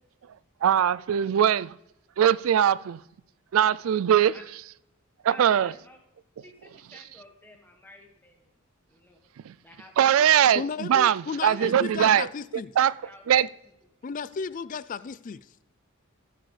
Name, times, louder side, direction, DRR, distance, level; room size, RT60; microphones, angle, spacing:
voice 1, 0.6-1.8 2.2-3.0 3.5-4.3 5.2-5.7 10.0-10.6 10.9-12.3 12.8-12.9 13.3-13.5, right 9 dB, 70° right, 0.3 m, -21 dB
voice 2, 5.3-6.0 6.4-8.5 8.9-9.2 9.6-10.3 11.3-11.7 13.0-13.4, left 1 dB, 10° left, 1.7 m, -50 dB
voice 3, 10.5-12.7 14.0-15.7, left 5 dB, 40° left, 0.3 m, -34 dB
14.5 x 8.1 x 3.3 m
head